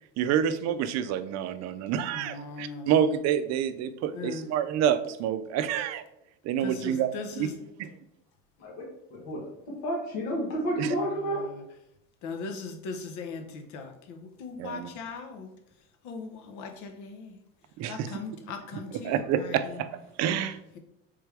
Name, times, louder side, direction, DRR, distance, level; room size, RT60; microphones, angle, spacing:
voice 1, 0.2-6.0 6.4-7.1 7.4-7.5 7.8-7.9 10.8-10.9 14.6-14.9 17.8-18.1 19.0-20.6, right 9 dB, 55° right, 11 dB, 0.5 m, -28 dB
voice 2, 2.1-3.1 4.1-4.5 6.6-7.5 10.8-11.6 12.2-15.5 16.0-17.4 17.9-19.8, left 4 dB, 65° left, 6 dB, 0.8 m, -39 dB
voice 3, 9.1-9.5 9.8-11.4, equal, 80° left, -3 dB, 1.2 m, -30 dB
3.4 x 3.3 x 3.3 m, 0.82 s
supercardioid pair, 90°, 32 cm